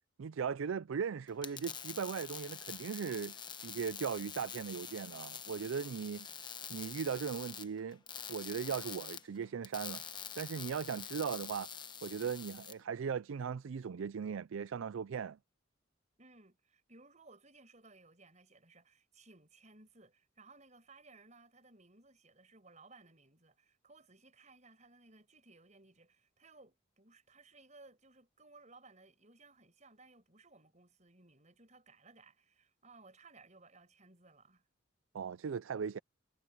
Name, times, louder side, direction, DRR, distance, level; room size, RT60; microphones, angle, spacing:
voice 1, 0.2-3.4 3.6-6.3 6.7-8.0 8.3-10.0 10.4-11.7 12.0-15.4 35.1-36.0, right 6 dB, 80° right, 0.4 m, -38 dB
sound 1, 1.3-12.7, left 7 dB, 20° left, 1.0 m, -46 dB
voice 2, 16.2-34.6, right 3 dB, 35° right, 5.9 m, -61 dB
head